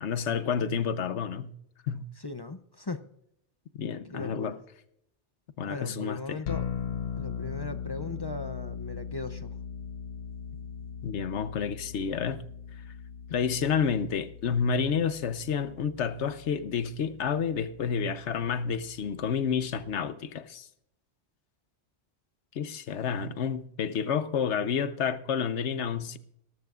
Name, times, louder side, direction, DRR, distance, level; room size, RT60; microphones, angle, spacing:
voice 1, 0.0-1.5 1.9-2.1 3.8-4.6 5.6-6.4 11.0-12.4 13.3-20.7 22.5-26.2, left 6 dB, 85° left, 1.1 m, -30 dB
voice 2, 2.2-3.0 4.1-4.6 5.7-6.7 7.2-9.5, left 3 dB, 35° left, 0.4 m, -38 dB
sound 1, 6.5-19.9, left 7 dB, 65° left, 0.9 m, -40 dB
21.0 x 12.5 x 2.4 m
omnidirectional pair, 1.1 m